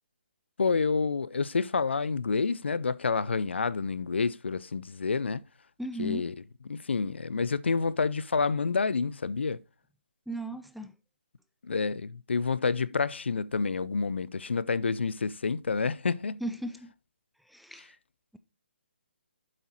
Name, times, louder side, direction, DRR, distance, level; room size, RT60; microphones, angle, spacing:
voice 1, 0.6-5.4 6.0-6.4 6.7-9.6 11.6-16.4, left 4 dB, 70° left, 0.5 m, -28 dB
voice 2, 5.8-6.3 10.3-10.9 16.4-16.9 17.5-18.0, right 1 dB, ahead, 0.3 m, -36 dB
7.9 x 7.4 x 2.9 m
figure-of-eight pair, 140°, 6 cm